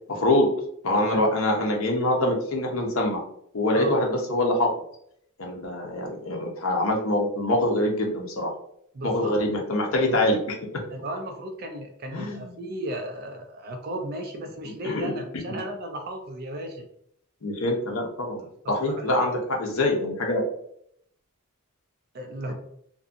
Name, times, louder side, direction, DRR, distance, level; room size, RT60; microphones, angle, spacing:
voice 1, 0.1-0.5 0.8-3.2 3.5-4.7 5.4-8.5 9.0-10.6 12.1-12.5 14.6-15.6 17.4-20.4, left 1 dB, 65° left, 1 dB, 0.6 m, -25 dB
voice 2, 0.9-1.2 3.7-4.0 8.9-9.3 10.0-10.2 10.9-16.9 18.6-19.4 22.1-22.5, right 1 dB, 45° right, 4 dB, 0.4 m, -35 dB
2.6 x 2.5 x 2.5 m, 0.69 s
head